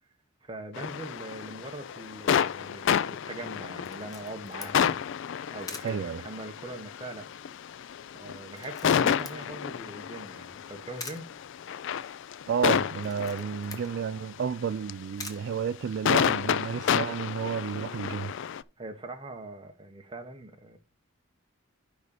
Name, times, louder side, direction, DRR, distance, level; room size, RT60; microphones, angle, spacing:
voice 1, 0.4-5.0 5.5-7.3 8.1-11.3 18.8-20.8, right 2 dB, 25° right, 1.2 m, -42 dB
sound 1, 0.7-14.0 14.9-15.0 16.1-18.6, left 8 dB, 65° left, 0.4 m, -30 dB
Camera, 3.8-16.3, left 3 dB, 20° left, 1.1 m, -49 dB
voice 2, 5.8-6.2 9.0-9.1 12.5-18.3, right 7 dB, 60° right, 0.3 m, -31 dB
6.4 x 5.4 x 6.6 m
head